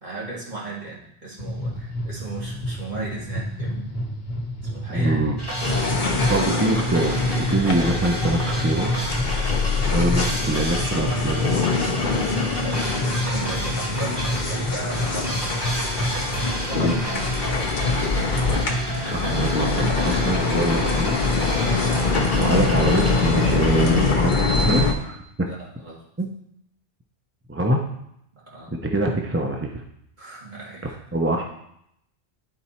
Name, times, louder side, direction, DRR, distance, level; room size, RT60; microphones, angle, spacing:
voice 1, 0.0-3.9 4.6-5.3 12.6-14.2 14.4-15.5 16.7-17.3 21.7-22.1 25.4-26.0 28.3-28.7 30.2-31.0, right 2 dB, 40° right, -6 dB, 2.3 m, -36 dB
sound 1, 1.4-16.5, equal, 60° left, 1.4 m, -30 dB
voice 2, 4.9-5.3 6.3-8.9 9.8-11.7 16.7-16.9 19.1-21.4 22.3-25.2 26.2-26.3 27.5-27.8 28.7-29.8 31.1-31.4, right 2 dB, 15° right, 2 dB, 0.5 m, -24 dB
sound 2, 5.4-24.1, equal, 20° left, 1.9 m, -29 dB
sound 3, 5.6-24.9, left 4 dB, 45° left, 0.9 m, -24 dB
10.5 x 4.1 x 4.3 m, 0.76 s
omnidirectional pair, 1.2 m